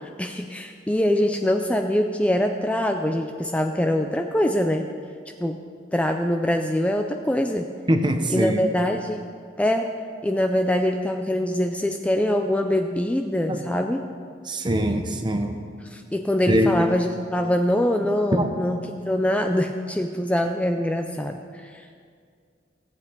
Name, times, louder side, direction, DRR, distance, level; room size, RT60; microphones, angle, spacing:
voice 1, 0.2-4.9 5.4-5.6 5.9-7.7 8.3-9.3 9.6-9.9 10.2-14.0 15.9-22.0, left 1 dB, 10° left, 4 dB, 0.4 m, -24 dB
voice 2, 7.9-8.6 13.5-13.6 14.5-15.6 16.5-16.7 18.3-18.5, equal, 25° right, 6 dB, 0.8 m, -22 dB
16.5 x 8.2 x 3.8 m, 2.2 s
head